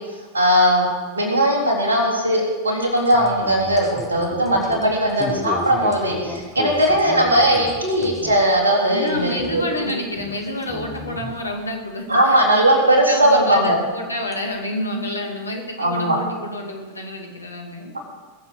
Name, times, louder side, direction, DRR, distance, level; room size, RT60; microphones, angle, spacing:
voice 1, 0.3-0.9 1.2-9.6 12.1-13.8 15.8-16.2, right 1 dB, 75° right, -1 dB, 3.7 m, -18 dB
sound 1, 2.8-8.6 8.9-9.9 10.2-11.4 12.4-12.5 13.7-13.8 14.3-14.4, left 3 dB, 15° left, 1.6 m, -34 dB
voice 2, 8.9-17.9, left 1 dB, 80° left, 1 dB, 2.4 m, -29 dB
21.0 x 7.6 x 6.5 m, 1.4 s
figure-of-eight pair, 90°, 0 cm